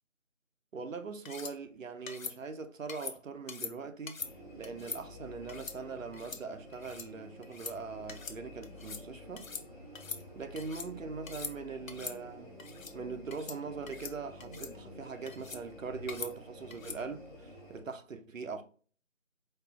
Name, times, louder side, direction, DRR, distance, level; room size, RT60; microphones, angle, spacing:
voice 1, 0.7-4.2 4.6-9.5 10.4-12.5 12.9-18.6, right 4 dB, 75° right, 0.6 m, -41 dB
sound 1, 1.3-1.5 2.1-2.4 2.9-3.2 3.5-3.7 4.1-4.3 4.6-5.0 5.5-5.8 6.1-6.4 6.7-7.1 7.4-7.8 8.1-8.4 8.6-9.0 9.4-9.7 9.9-10.9 11.2-11.5 11.9-12.2 12.6-12.9 13.3-13.6 13.9-14.1 14.4-14.7 15.3-15.6 16.1-16.3 16.7-17.0, left 5 dB, 90° left, 0.6 m, -42 dB
sound 2, 4.2-17.8, left 1 dB, 40° right, 0.8 m, -50 dB
4.3 x 2.0 x 2.3 m
figure-of-eight pair, 175°, 39 cm